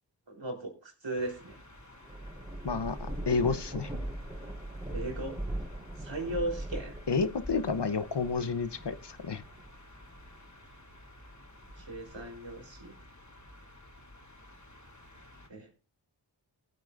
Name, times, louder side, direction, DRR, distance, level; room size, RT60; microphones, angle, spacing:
voice 1, 0.3-1.6 4.9-5.4 6.0-7.0 11.8-12.9 15.5-15.7, right 1 dB, 70° right, 3 dB, 4.0 m, -37 dB
sound 1, 1.2-15.5, left 1 dB, 40° left, 3.0 m, -52 dB
Thunder / Rain, 1.8-10.7 11.2-12.5, right 1 dB, 15° right, 4.1 m, -41 dB
voice 2, 2.6-3.9 7.1-9.4, left 5 dB, 60° left, 13 dB, 1.0 m, -30 dB
19.5 x 9.0 x 2.6 m, 0.31 s
wide cardioid pair, 40°, 46 cm